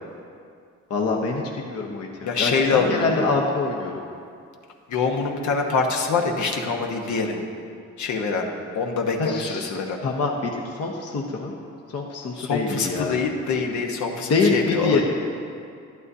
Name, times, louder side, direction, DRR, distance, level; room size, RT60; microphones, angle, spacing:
voice 1, 0.9-4.0 9.2-9.7 10.0-11.5 11.9-13.2 14.3-15.0, left 3 dB, 55° left, 0 dB, 1.1 m, -25 dB
voice 2, 2.2-3.3 4.9-7.4 8.0-8.5 8.7-10.0 12.4-15.0, left 4 dB, 70° left, 1 dB, 1.2 m, -24 dB
11.5 x 11.0 x 2.7 m, 2.4 s
cardioid pair, 90°, 30 cm